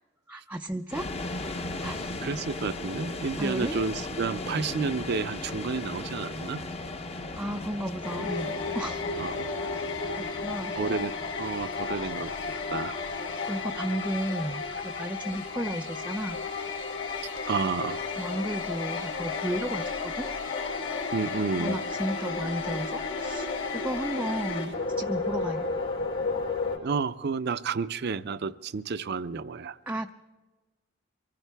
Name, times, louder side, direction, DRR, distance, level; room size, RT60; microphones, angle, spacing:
voice 1, 0.3-1.1 1.8-2.3 3.4-3.8 7.4-9.0 10.2-10.7 13.5-16.4 18.2-20.3 21.6-23.5 23.7-25.7 29.9-30.1, right 1 dB, 10° right, 4 dB, 0.4 m, -33 dB
sound 1, 0.9-17.9, left 2 dB, 30° left, 0.8 m, -38 dB
voice 2, 2.2-6.6 9.2-9.5 10.7-11.1 11.4-12.3 12.7-12.9 17.5-18.0 21.1-21.8 26.8-29.8, right 4 dB, 55° right, 14 dB, 0.5 m, -30 dB
sound 2, 8.0-26.8, left 4 dB, 70° left, 3.7 m, -33 dB
24.5 x 15.5 x 3.4 m, 1.2 s
head